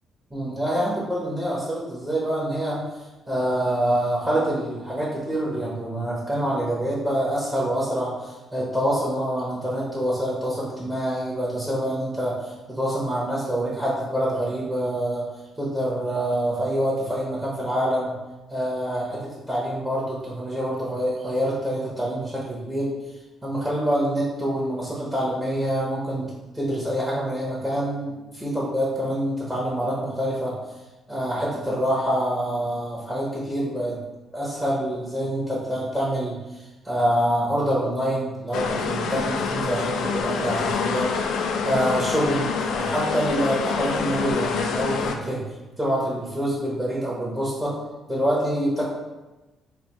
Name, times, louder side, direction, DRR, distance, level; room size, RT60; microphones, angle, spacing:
voice 1, 0.3-2.8 3.3-15.3 15.6-18.1 18.5-22.9 23.4-30.5 31.1-34.0 34.3-41.1 41.6-42.5 42.7-45.4 45.8-47.8 48.1-48.8, equal, 10° right, -6 dB, 0.9 m, -26 dB
sound 1, 38.5-45.2, left 5 dB, 80° left, 0.3 m, -26 dB
3.2 x 2.2 x 4.2 m, 1.1 s
cardioid pair, 90°, 0 cm